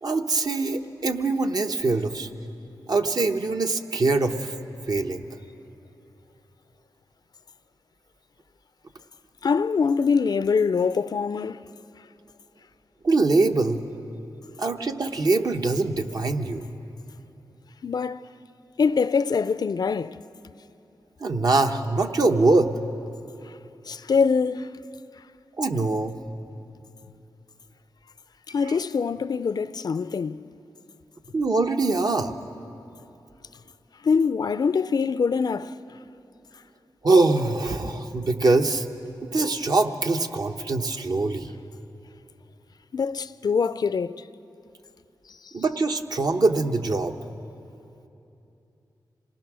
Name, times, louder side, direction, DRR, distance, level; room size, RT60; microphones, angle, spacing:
voice 1, 0.0-2.3 2.9-4.5 4.9-5.3 13.0-13.8 14.6-16.6 21.2-22.7 25.6-26.2 31.3-32.4 37.0-38.9 39.3-41.5 45.5-47.2, right 3 dB, 55° right, 1.0 m, -23 dB
voice 2, 9.4-11.6 17.8-18.2 18.8-20.5 23.5-23.6 23.8-24.7 28.5-30.5 34.0-35.8 42.9-44.3 45.3-45.5, left 5 dB, 55° left, 0.4 m, -24 dB
26.0 x 19.0 x 6.2 m
wide cardioid pair, 85°, 8 cm